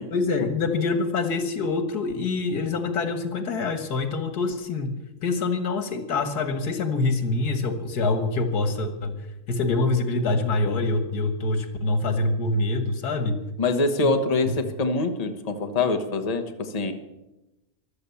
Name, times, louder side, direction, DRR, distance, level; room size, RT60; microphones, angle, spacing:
voice 1, 0.1-4.9 5.2-9.2 9.5-13.4 14.0-14.1, left 3 dB, 85° left, 8 dB, 2.0 m, -25 dB
voice 2, 13.6-16.9, left 3 dB, 25° left, 6 dB, 1.1 m, -24 dB
14.5 x 12.0 x 7.0 m, 0.98 s
omnidirectional pair, 1.6 m